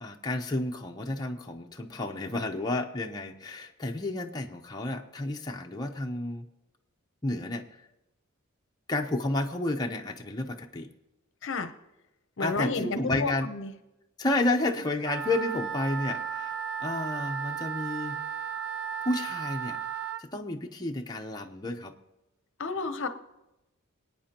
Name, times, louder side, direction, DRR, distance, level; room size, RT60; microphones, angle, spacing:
voice 1, 0.0-6.5 7.2-7.6 8.9-10.9 12.4-13.5 14.2-18.2 19.0-19.8 20.2-21.9, left 2 dB, 20° left, 1 dB, 0.7 m, -31 dB
voice 2, 11.4-11.7 12.4-13.7 22.6-23.1, left 3 dB, 60° left, 10 dB, 0.7 m, -31 dB
Wind instrument woodwind instrument, 15.0-20.2, right 8 dB, 50° right, 0.5 m, -34 dB
25.5 x 9.0 x 2.9 m, 0.95 s
head